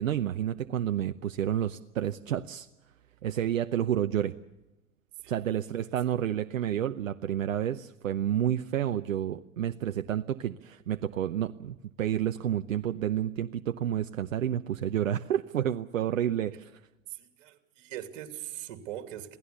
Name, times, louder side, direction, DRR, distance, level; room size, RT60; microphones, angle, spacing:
voice 1, 0.0-2.7 3.2-4.3 5.3-16.8, right 10 dB, 80° right, 8 dB, 0.9 m, -30 dB
voice 2, 17.1-19.4, right 12 dB, 55° right, 7 dB, 3.0 m, -41 dB
27.5 x 17.5 x 7.0 m, 1.0 s
hypercardioid pair, 105°, 39 cm